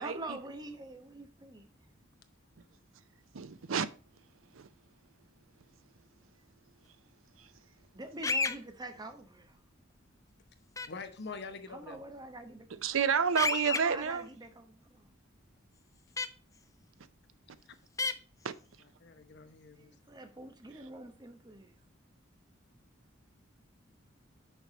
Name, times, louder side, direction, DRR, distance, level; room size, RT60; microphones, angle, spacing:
voice 1, 0.0-1.6 7.9-9.6 11.7-12.9 13.6-15.1 19.8-21.8, right 2 dB, 20° right, 0.9 m, -45 dB
voice 2, 3.3-3.9 4.5-4.7 12.8-14.3 18.4-18.5, right 6 dB, 80° right, 0.6 m, -29 dB
sound 1, 8.2-8.6 10.8-10.9 13.4-13.8 16.2-16.3 18.0-18.1, left 4 dB, 15° left, 0.4 m, -30 dB
voice 3, 10.9-12.0 18.8-20.2, left 4 dB, 55° left, 0.9 m, -45 dB
6.4 x 4.7 x 5.3 m
head